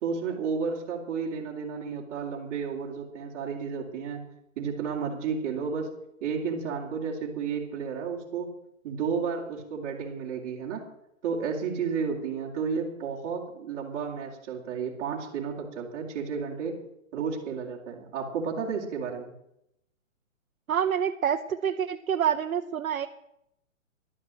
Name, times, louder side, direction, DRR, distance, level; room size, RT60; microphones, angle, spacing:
voice 1, 0.0-4.2 4.6-5.9 6.2-8.5 8.8-10.9 11.2-16.8 17.1-19.3, right 6 dB, 25° right, -4 dB, 2.7 m, -32 dB
voice 2, 20.7-23.1, right 8 dB, 85° right, 4 dB, 1.0 m, -27 dB
11.5 x 9.3 x 7.7 m, 0.80 s
hypercardioid pair, 155°, 40 cm